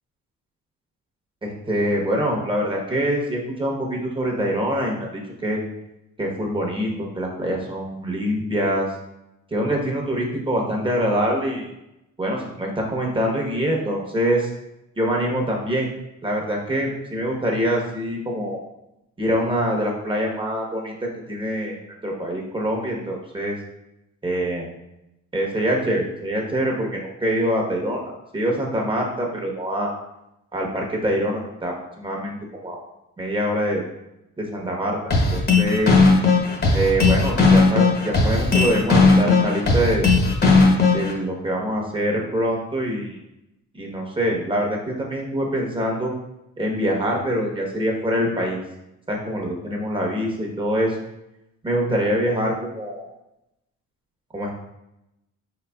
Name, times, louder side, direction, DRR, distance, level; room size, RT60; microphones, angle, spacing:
voice 1, 1.4-5.6 6.2-8.9 9.5-11.7 12.2-14.5 15.0-15.9 16.2-18.6 19.2-20.9 21.3-21.8 22.0-23.5 24.2-24.7 25.3-28.0 28.3-29.9 30.5-32.8 33.2-33.8 34.4-35.0 35.3-35.9 36.7-40.1 40.9-43.2 43.7-46.1 46.6-48.6 49.1-51.0 51.6-53.0 54.3-54.5, equal, 15° right, -1 dB, 1.0 m, -24 dB
sound 1, 35.1-41.1, left 3 dB, 35° left, 1.0 m, -16 dB
4.6 x 4.0 x 2.3 m, 0.89 s
cardioid pair, 90°, 30 cm